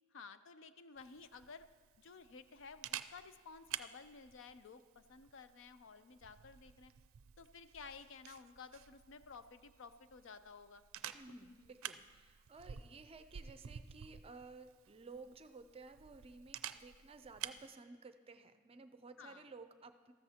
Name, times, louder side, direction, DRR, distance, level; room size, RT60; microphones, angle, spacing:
voice 1, 0.1-1.7 2.0-6.9 7.4-10.8 11.3-11.7 19.2-19.5, left 5 dB, 65° left, 11 dB, 0.5 m, -54 dB
Camera, 1.0-17.7, right 10 dB, 90° right, 0.4 m, -51 dB
voice 2, 11.1-20.1, right 3 dB, 30° right, 9 dB, 0.5 m, -55 dB
14.0 x 13.5 x 2.9 m, 1.5 s
head